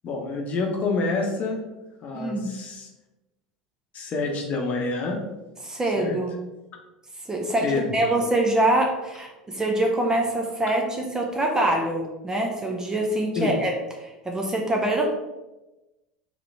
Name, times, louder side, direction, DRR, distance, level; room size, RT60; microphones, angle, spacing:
voice 1, 0.0-1.6 2.0-2.9 3.9-5.2 6.0-6.2 7.6-8.1 13.4-13.5, left 3 dB, 45° left, 1 dB, 0.9 m, -27 dB
voice 2, 2.1-2.5 5.6-6.3 7.3-13.7 14.0-15.1, right 1 dB, 15° right, 1 dB, 0.8 m, -24 dB
3.8 x 3.2 x 3.4 m, 1.0 s
hypercardioid pair, 80°, 4 cm